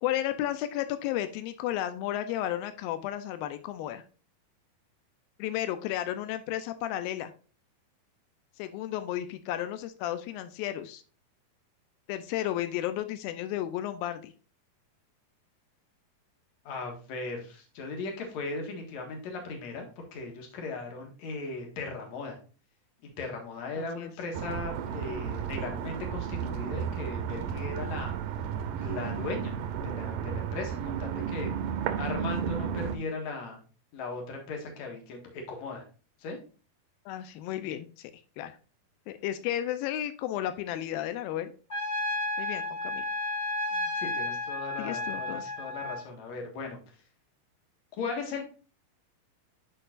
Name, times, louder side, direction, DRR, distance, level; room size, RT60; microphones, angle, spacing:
voice 1, 0.0-4.0 5.4-7.3 8.6-11.0 12.1-14.3 23.8-24.1 37.1-38.1 38.4-38.5 39.1-41.5 42.4-43.0 44.8-45.5, left 12 dB, 90° left, 10 dB, 2.4 m, -33 dB
voice 2, 16.6-22.4 23.0-28.1 28.8-29.5 29.8-31.5 32.0-33.6 33.9-35.8 36.2-36.4 43.7-46.8 48.0-48.4, left 3 dB, 55° left, 2 dB, 2.7 m, -37 dB
sound 1, 24.3-33.0, right 8 dB, 85° right, 2.4 m, -33 dB
Trumpet, 41.7-46.1, left 2 dB, 5° left, 3.1 m, -32 dB
10.5 x 4.5 x 2.4 m, 0.36 s
omnidirectional pair, 4.1 m